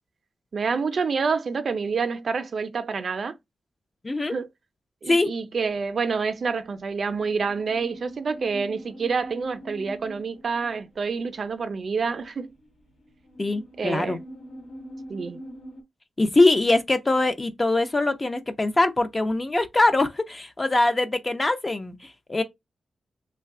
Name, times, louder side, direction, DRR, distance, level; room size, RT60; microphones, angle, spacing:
voice 1, 0.5-3.3 4.3-4.5 5.0-12.5 13.8-14.2 15.1-15.4, right 5 dB, 55° right, 0.4 m, -27 dB
voice 2, 4.0-4.4 5.1-5.3 13.4-14.2 16.2-22.4, left 2 dB, 25° left, 0.5 m, -22 dB
sound 1, 5.5-15.8, equal, 70° left, 1.1 m, -43 dB
3.2 x 2.2 x 3.6 m
wide cardioid pair, 130°, 0 cm